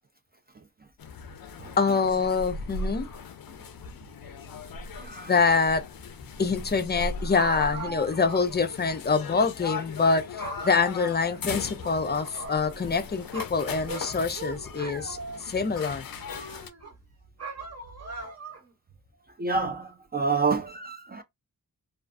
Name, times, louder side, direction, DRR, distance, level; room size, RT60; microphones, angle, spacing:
sound 1, 1.0-16.7, left 4 dB, 80° left, 0.5 m, -39 dB
voice 1, 1.8-3.1 5.3-5.8 6.4-16.0, left 4 dB, 30° left, 0.4 m, -25 dB
voice 2, 4.9-5.4 19.4-21.2, right 4 dB, 30° right, 0.4 m, -28 dB
sound 2, 7.3-8.5 8.8-8.9 9.8-10.1 10.4-11.4 11.8-13.0 13.3-15.5 16.1-16.9 17.4-18.7, right 3 dB, 45° right, 0.9 m, -39 dB
2.4 x 2.3 x 2.4 m
wide cardioid pair, 95°, 35 cm